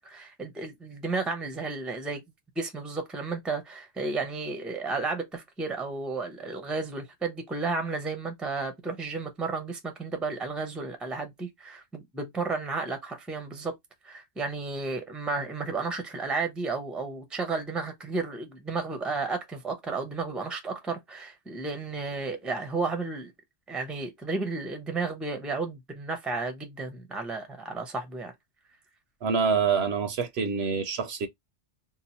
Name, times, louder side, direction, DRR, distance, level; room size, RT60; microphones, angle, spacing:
voice 1, 0.0-2.2 2.6-13.7 14.0-23.3 23.7-28.3, right 3 dB, ahead, 0.6 m, -33 dB
voice 2, 29.2-31.3, right 5 dB, 65° right, 0.8 m, -26 dB
2.8 x 2.3 x 4.2 m
omnidirectional pair, 1.2 m